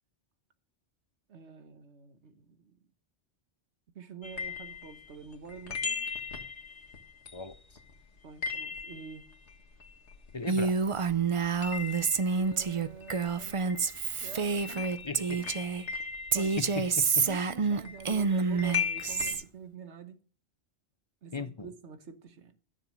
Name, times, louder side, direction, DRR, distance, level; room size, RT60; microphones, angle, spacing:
voice 1, 1.3-2.8 3.9-6.1 8.2-9.3 12.3-13.8 14.2-15.5 16.3-16.6 17.2-20.2 21.2-22.6, right 5 dB, 70° right, 1.5 m, -47 dB
sound 1, 4.2-10.8 11.1-19.3, left 6 dB, 65° left, 2.0 m, -39 dB
voice 2, 10.3-10.8 15.0-15.4 16.6-17.3 21.3-21.7, left 4 dB, 30° left, 0.5 m, -37 dB
Female speech woman speaking, 10.5-15.8 16.3-19.4, right 5 dB, 40° right, 0.4 m, -28 dB
13.5 x 6.7 x 6.4 m
omnidirectional pair, 1.2 m